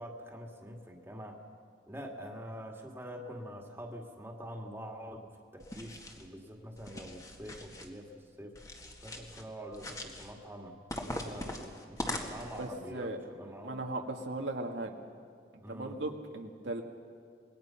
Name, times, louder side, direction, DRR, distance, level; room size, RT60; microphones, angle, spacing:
voice 1, 0.0-1.4 1.9-8.6 9.0-13.8 15.6-16.0, equal, 15° right, 1 dB, 2.1 m, -45 dB
sound 1, 5.6-6.3 6.8-7.9 8.5-9.4 9.7-10.3 10.9-12.7, left 1 dB, 20° left, 1.8 m, -41 dB
voice 2, 12.6-13.2 13.6-14.9 15.7-16.8, right 2 dB, 85° right, 2 dB, 1.9 m, -37 dB
26.5 x 20.5 x 5.8 m, 2.3 s
head